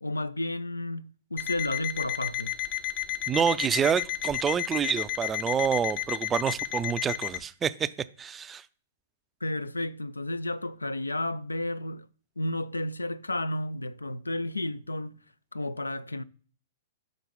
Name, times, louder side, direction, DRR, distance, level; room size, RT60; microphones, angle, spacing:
voice 1, 0.0-2.5 9.4-12.1 12.4-15.2 15.5-16.2, left 1 dB, 80° left, 0.3 m, -32 dB
Alarm, 1.4-7.4, left 13 dB, 35° left, 0.7 m, -32 dB
voice 2, 3.3-7.9 8.2-8.6, right 7 dB, 15° right, 0.3 m, -27 dB
6.1 x 3.9 x 5.3 m
figure-of-eight pair, 110°, 0 cm